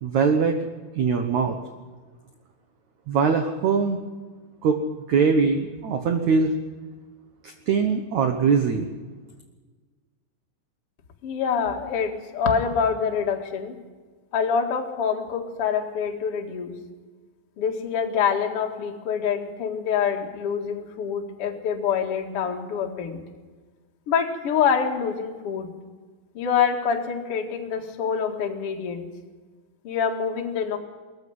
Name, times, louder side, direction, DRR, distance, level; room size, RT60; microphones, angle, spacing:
voice 1, 0.0-0.7 1.0-1.6 3.1-4.0 4.6-4.8 5.1-6.5 7.4-8.9, right 5 dB, 75° right, 6 dB, 1.7 m, -22 dB
voice 2, 11.2-13.8 14.3-16.7 17.6-23.2 24.1-25.7 26.3-29.1 29.8-30.8, left 7 dB, 45° left, 2 dB, 2.0 m, -26 dB
20.0 x 14.5 x 9.4 m, 1.4 s
omnidirectional pair, 5.1 m